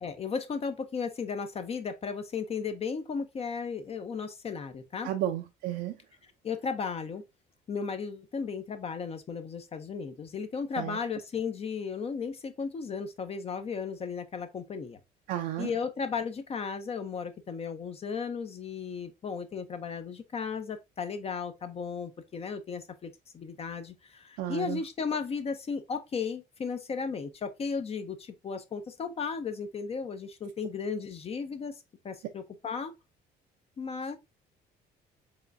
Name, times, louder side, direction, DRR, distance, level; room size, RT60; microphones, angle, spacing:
voice 1, 0.0-5.1 6.4-7.2 7.7-15.0 15.6-23.1 23.3-23.9 24.5-28.2 28.4-31.7 32.0-32.9 33.8-34.2, left 5 dB, 35° left, 0.6 m, -35 dB
voice 2, 5.0-5.9 10.8-11.0 15.3-15.7 24.4-24.8, right 12 dB, 90° right, 0.5 m, -32 dB
4.8 x 3.2 x 2.6 m
cardioid pair, 110°, 17 cm